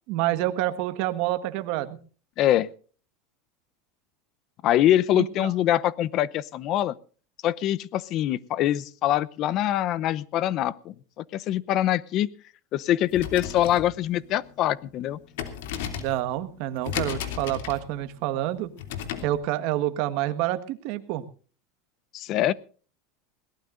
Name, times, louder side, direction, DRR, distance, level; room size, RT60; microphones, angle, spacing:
voice 1, 0.1-2.0 5.1-5.5 16.0-18.7 19.2-21.3, right 14 dB, 60° right, 11 dB, 1.5 m, -28 dB
voice 2, 2.4-2.7 4.6-6.9 7.4-12.3 12.7-15.2 22.1-22.5, left 12 dB, 45° left, 19 dB, 0.7 m, -24 dB
sound 1, 13.0-19.4, left 9 dB, 80° left, 2.8 m, -36 dB
21.5 x 18.5 x 2.6 m, 0.40 s
supercardioid pair, 140°, 0 cm